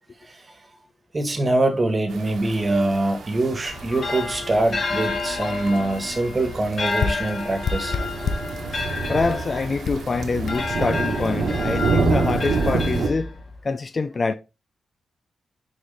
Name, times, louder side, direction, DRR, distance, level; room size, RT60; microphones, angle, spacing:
voice 1, 1.1-8.2, right 2 dB, 25° right, 1.5 m, -24 dB
sound 1, 2.1-13.1, right 4 dB, 75° right, 1.4 m, -28 dB
sound 2, 3.6-13.6, left 3 dB, 50° left, 1.8 m, -30 dB
sound 3, 5.2-5.3 5.7-5.8 6.0-6.2 7.0-8.6 9.3-9.4 9.8-10.1 10.5-10.6, left 5 dB, 70° left, 0.9 m, -28 dB
voice 2, 9.1-13.4 13.6-14.3, left 4 dB, 35° left, 0.4 m, -25 dB
6.3 x 4.8 x 3.4 m
wide cardioid pair, 110°, 0 cm